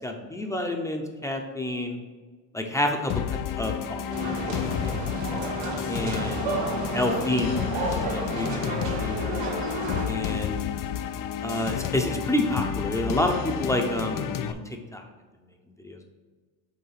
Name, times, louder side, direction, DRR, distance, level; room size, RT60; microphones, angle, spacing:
voice 1, 0.0-2.0 2.5-3.2 3.6-4.0 4.5-4.9 5.9-6.5 6.9-8.6 8.9-9.4 10.1-10.6 11.4-14.6 14.9-15.0 15.8-16.0, left 1 dB, 5° left, 3 dB, 0.7 m, -29 dB
sound 1, 3.1-14.5, left 9 dB, 45° left, 0.5 m, -31 dB
sound 2, 4.1-10.1, right 2 dB, 85° right, 2.0 m, -31 dB
5.7 x 3.5 x 5.8 m, 1.4 s
cardioid pair, 100°, 49 cm